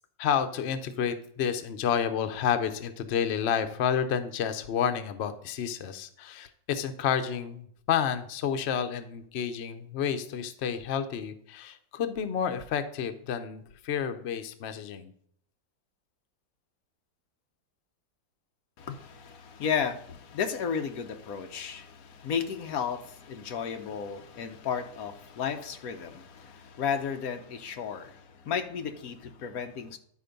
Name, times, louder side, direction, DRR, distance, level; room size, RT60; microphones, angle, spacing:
voice 1, 0.2-15.1, left 8 dB, 85° left, 0.5 m, -30 dB
voice 2, 18.8-30.0, left 7 dB, 60° left, 1.0 m, -33 dB
11.0 x 4.5 x 5.2 m
omnidirectional pair, 2.1 m